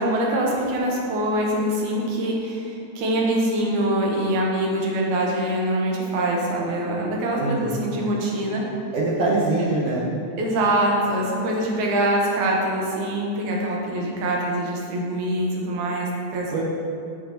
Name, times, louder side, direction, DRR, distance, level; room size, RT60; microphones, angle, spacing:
voice 1, 0.0-8.6 10.4-16.6, right 1 dB, 85° right, -2 dB, 2.5 m, -24 dB
voice 2, 7.4-7.8 8.9-10.1 16.5-16.6, right 2 dB, 65° right, -5 dB, 1.7 m, -23 dB
8.1 x 7.5 x 2.8 m, 2.5 s
omnidirectional pair, 3.4 m